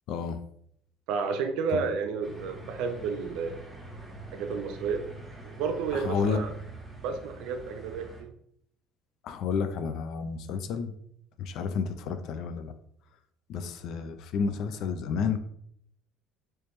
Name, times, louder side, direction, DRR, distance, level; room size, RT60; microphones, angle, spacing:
voice 1, 0.1-0.4 1.7-1.8 5.9-6.4 9.2-10.9 11.4-12.7 13.5-15.4, left 6 dB, 65° left, 9 dB, 0.4 m, -31 dB
voice 2, 1.1-3.6 4.3-5.0 5.4-6.5 7.0-8.3, right 5 dB, 75° right, 7 dB, 0.5 m, -31 dB
sound 1, 2.2-8.2, right 2 dB, 5° right, 1.1 m, -45 dB
3.2 x 3.0 x 3.0 m, 0.67 s
supercardioid pair, 90°, 0 cm